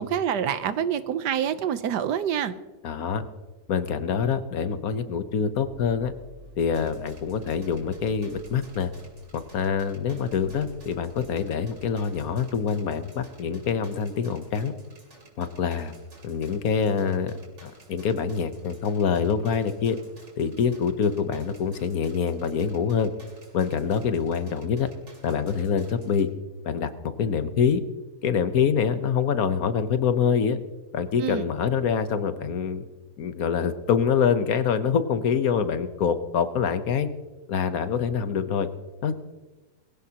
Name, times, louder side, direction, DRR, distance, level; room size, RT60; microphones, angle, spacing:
voice 1, 0.0-2.5 31.2-31.5, right 9 dB, 90° right, 12 dB, 1.4 m, -26 dB
voice 2, 2.8-3.2 3.7-6.1 6.6-8.9 9.3-14.7 15.4-15.9 16.2-20.0 20.4-23.1 23.5-24.9 25.2-26.3 26.6-26.9 27.2-27.8 28.2-30.6 30.9-32.8 33.2-37.1 37.5-38.7 39.0-39.1, left 6 dB, 65° left, 11 dB, 1.3 m, -25 dB
sound 1, 5.5-12.3, equal, 65° right, 3.9 m, -51 dB
sound 2, 6.6-26.2, right 2 dB, 45° right, 3.0 m, -54 dB
22.0 x 16.0 x 2.9 m, 1.2 s
omnidirectional pair, 1.8 m